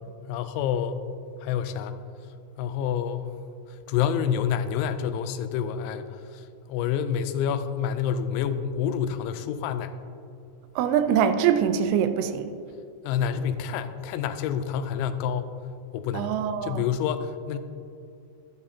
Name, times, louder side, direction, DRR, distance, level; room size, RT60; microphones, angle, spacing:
voice 1, 0.3-1.0 1.4-2.0 2.6-3.4 3.7-10.0 13.0-15.5 15.9-16.3 16.6-17.6, left 8 dB, 85° left, 10 dB, 2.9 m, -28 dB
voice 2, 10.8-12.5 16.1-16.8, right 8 dB, 80° right, 9 dB, 2.6 m, -23 dB
11.0 x 11.0 x 2.8 m, 2.5 s
omnidirectional pair, 5.3 m